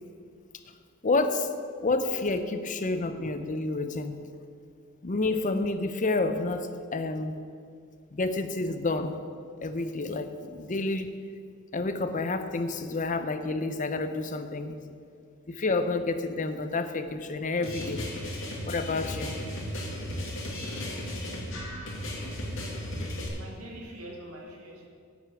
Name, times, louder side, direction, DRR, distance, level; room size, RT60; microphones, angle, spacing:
voice 1, 1.0-1.5 1.8-4.2 5.0-7.4 8.1-9.2 9.6-11.2 11.7-14.8 15.5-18.1 18.6-19.4, left 3 dB, 35° left, 9 dB, 0.6 m, -29 dB
sound 1, 17.6-23.3, left 1 dB, 60° left, 2.4 m, -35 dB
voice 2, 21.0-21.9 23.4-24.9, right 1 dB, 75° right, -1 dB, 2.5 m, -45 dB
10.5 x 6.6 x 8.4 m, 2.3 s
head